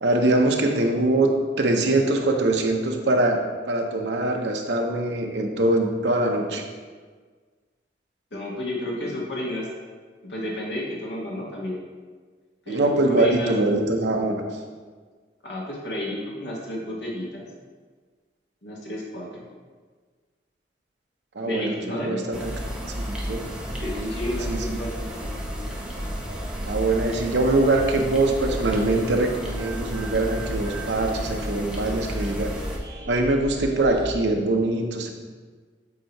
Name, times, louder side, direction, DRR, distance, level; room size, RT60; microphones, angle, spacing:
voice 1, 0.0-3.4 3.7-6.6 12.7-14.4 21.3-22.6 23.0-23.5 24.5-24.8 26.7-32.5 33.1-35.1, right 2 dB, 85° right, 3 dB, 0.7 m, -23 dB
voice 2, 8.3-9.7 10.2-11.8 12.7-13.6 15.4-17.4 18.6-19.3 21.4-22.4 23.8-24.9 25.6-25.7, left 1 dB, 85° left, -4 dB, 1.4 m, -31 dB
sound 1, 22.3-32.8, equal, 5° right, 0.6 m, -33 dB
sound 2, 24.3-34.1, equal, 65° right, 1.6 m, -38 dB
8.2 x 2.8 x 4.5 m, 1.5 s
head